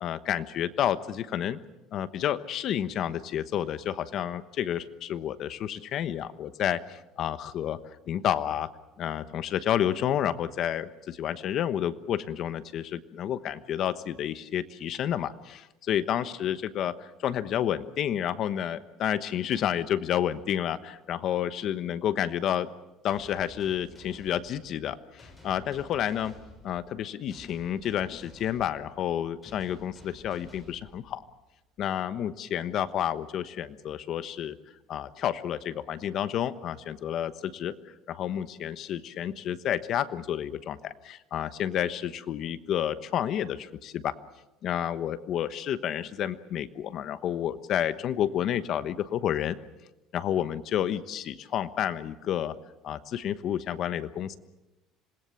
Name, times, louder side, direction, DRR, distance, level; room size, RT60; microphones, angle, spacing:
voice 1, 0.0-1.6 1.9-7.8 8.1-8.7 9.0-22.7 23.0-26.3 26.6-31.2 31.8-34.6 34.9-37.7 38.1-44.1 44.6-49.6 50.1-52.5 52.8-54.4, left 10 dB, 50° left, 13 dB, 1.1 m, -30 dB
sound 1, 23.1-31.5, left 2 dB, 10° left, 6.2 m, -52 dB
26.5 x 20.0 x 7.1 m, 1.0 s
cardioid pair, 135°, 0 cm